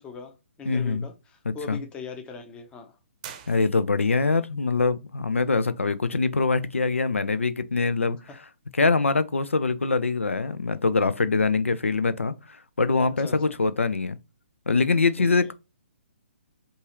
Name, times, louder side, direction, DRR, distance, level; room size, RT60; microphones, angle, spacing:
voice 1, 0.0-3.0 8.3-8.4 13.0-13.4 15.2-15.3, left 5 dB, 15° left, 0.6 m, -40 dB
voice 2, 0.7-1.1 1.5-1.8 3.5-8.2 8.8-14.2 14.7-15.5, left 4 dB, 80° left, 0.4 m, -24 dB
sound 1, 3.2-4.2, right 9 dB, 35° right, 0.7 m, -44 dB
5.4 x 2.5 x 2.9 m
figure-of-eight pair, 130°, 7 cm